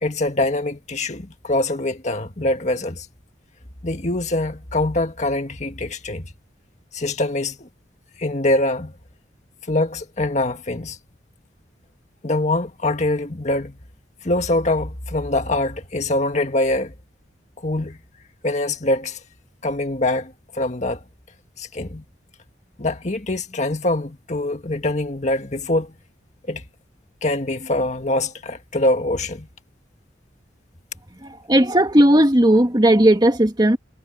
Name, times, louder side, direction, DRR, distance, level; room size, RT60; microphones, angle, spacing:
voice 1, 0.0-3.1 3.8-6.2 6.9-7.7 8.2-8.9 9.7-11.0 12.2-13.8 14.2-16.9 17.6-18.0 18.4-19.2 19.6-21.0 21.6-22.0 22.8-25.9 26.5-26.6 27.2-29.5, left 2 dB, 40° left, 1.8 m, -23 dB
voice 2, 31.2-33.8, right 1 dB, 25° right, 2.1 m, -16 dB
head